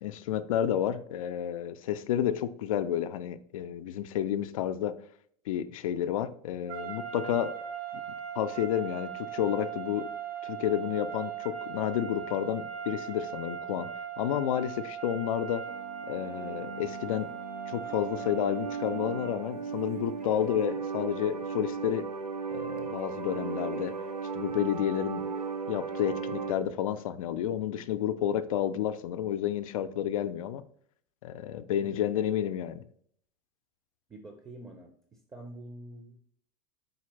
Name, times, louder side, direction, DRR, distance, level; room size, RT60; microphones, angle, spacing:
voice 1, 0.0-5.0 5.5-7.5 8.4-10.1 10.4-13.9 14.2-15.6 16.1-17.3 17.7-22.1 22.5-23.9 24.3-25.2 25.7-30.6 31.2-32.8, left 10 dB, 60° left, 0.4 m, -30 dB
sound 1, 6.7-19.5, right 9 dB, 65° right, 1.5 m, -39 dB
sound 2, 15.7-26.5, right 5 dB, 85° right, 0.4 m, -36 dB
voice 2, 31.8-32.4 34.1-36.2, right 1 dB, 15° right, 0.5 m, -47 dB
4.3 x 3.9 x 2.8 m
figure-of-eight pair, 80°, 20 cm